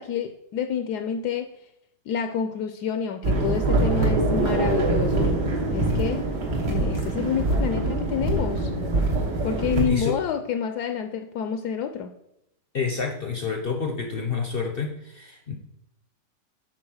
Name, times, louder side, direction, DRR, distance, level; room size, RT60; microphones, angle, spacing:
voice 1, 0.0-1.5 2.1-5.3 5.7-6.3 6.6-8.7 9.4-12.1, left 8 dB, 75° left, 7 dB, 1.1 m, -28 dB
sound 1, 3.2-9.9, right 2 dB, 75° right, 1.9 m, -24 dB
voice 2, 12.7-15.5, left 5 dB, 55° left, 3 dB, 0.6 m, -28 dB
6.2 x 4.3 x 6.3 m, 0.79 s
omnidirectional pair, 1.9 m